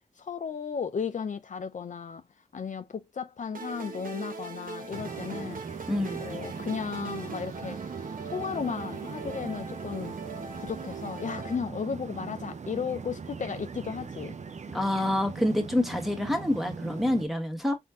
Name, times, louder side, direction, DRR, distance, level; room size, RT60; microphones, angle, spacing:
voice 1, 0.2-2.2 2.5-5.6 6.2-7.8 8.2-10.1 10.6-14.4, left 6 dB, 55° left, 0.6 m, -34 dB
sound 1, 3.5-11.5, right 4 dB, 70° right, 1.1 m, -40 dB
sound 2, 4.9-17.2, right 5 dB, 50° right, 0.6 m, -40 dB
voice 2, 5.9-6.2 14.7-17.8, left 1 dB, ahead, 1.5 m, -27 dB
4.3 x 2.6 x 3.6 m
cardioid pair, 50°, 15 cm